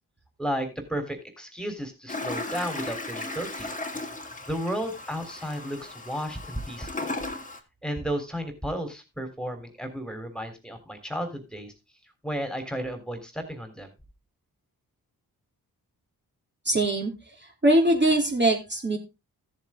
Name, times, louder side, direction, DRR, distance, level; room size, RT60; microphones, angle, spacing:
voice 1, 0.4-3.7 4.5-7.1 7.8-11.7 12.2-13.9, equal, ahead, 6 dB, 3.4 m, -33 dB
Toilet flush, 2.1-7.6, left 2 dB, 20° left, 2.1 m, -36 dB
voice 2, 16.6-17.1 17.6-19.0, right 1 dB, 25° right, 0 dB, 3.0 m, -21 dB
14.0 x 7.3 x 3.6 m, 0.26 s
supercardioid pair, 45°, 39 cm